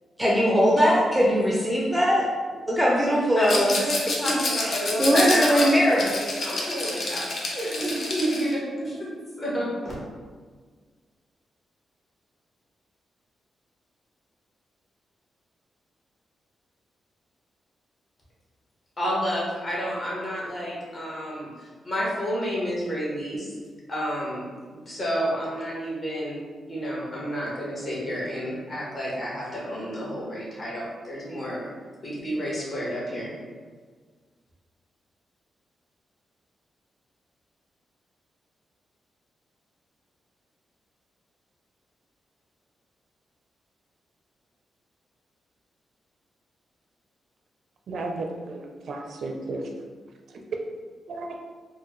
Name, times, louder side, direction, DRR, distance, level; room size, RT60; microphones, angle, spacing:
voice 1, 0.2-2.3 2.7-3.8 4.1-6.1, equal, ahead, -4 dB, 0.5 m, -21 dB
voice 2, 3.3-9.1 9.4-9.9 19.0-23.5 23.9-24.4 24.7-26.4 26.7-31.7 32.0-33.3, equal, 35° left, -6 dB, 1.3 m, -30 dB
Rattle, 3.4-8.5, left 2 dB, 55° left, 0.7 m, -29 dB
voice 3, 47.9-49.7 50.3-50.4 51.1-51.4, right 2 dB, 65° right, 2 dB, 0.4 m, -34 dB
4.4 x 2.2 x 3.1 m, 1.5 s
wide cardioid pair, 130°, 0 cm